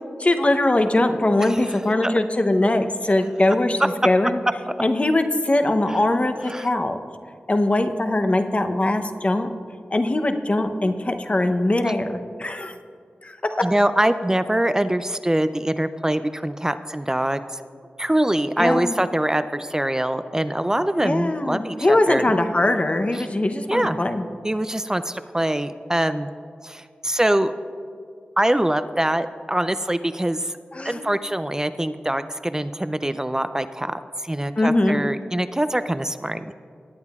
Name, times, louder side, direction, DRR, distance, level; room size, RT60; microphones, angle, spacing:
voice 1, 0.2-4.4 4.8-7.0 7.5-9.5 9.9-12.8 13.2-13.6 18.6-19.0 21.0-24.3 30.7-31.0 34.6-35.0, left 1 dB, 35° left, 7 dB, 0.7 m, -21 dB
voice 2, 1.5-2.1 5.9-6.0 6.5-6.7 13.6-17.6 18.0-22.3 23.1-23.3 23.7-24.0 24.4-26.3 26.6-27.5 28.4-30.6 30.8-36.5, right 1 dB, 15° right, 11 dB, 0.4 m, -24 dB
19.0 x 8.6 x 2.4 m, 2.2 s
cardioid pair, 50°, 4 cm